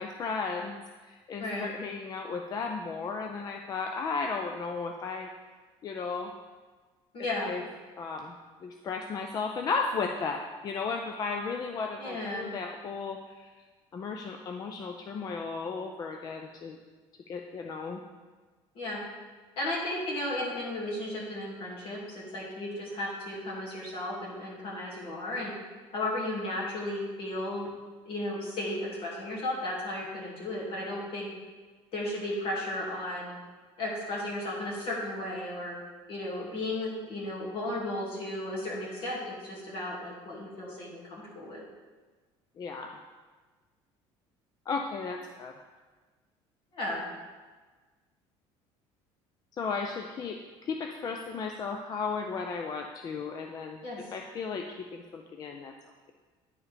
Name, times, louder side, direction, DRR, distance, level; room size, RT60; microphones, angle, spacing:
voice 1, 0.0-5.3 5.8-6.3 7.4-7.6 8.0-8.3 8.6-13.5 13.9-16.8 17.3-18.0 42.6-43.0 44.7-45.5 49.6-50.4 50.7-53.8 54.1-55.7, left 4 dB, 35° left, 4 dB, 0.4 m, -34 dB
voice 2, 1.4-1.7 7.1-7.5 12.0-12.5 18.7-19.0 19.6-25.5 25.9-27.6 28.1-31.3 31.9-33.3 33.8-35.8 36.1-41.6 46.7-47.1 53.8-54.0, left 1 dB, 50° left, -4 dB, 2.3 m, -34 dB
9.8 x 4.5 x 3.4 m, 1.4 s
cardioid pair, 130°, 12 cm